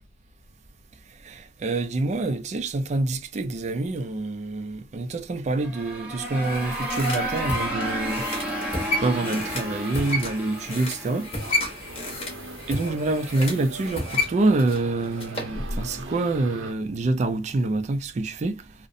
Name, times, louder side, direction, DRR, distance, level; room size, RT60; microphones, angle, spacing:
voice 1, 1.2-8.2 9.0-11.3 12.7-18.7, right 2 dB, 35° right, 0.3 m, -26 dB
sound 1, 5.5-12.3, right 1 dB, 10° right, 0.6 m, -32 dB
sound 2, 6.2-15.6 15.9-16.0, left 2 dB, 30° left, 0.8 m, -32 dB
sound 3, 11.4-16.7, right 3 dB, 90° right, 0.7 m, -41 dB
2.6 x 2.1 x 2.5 m
head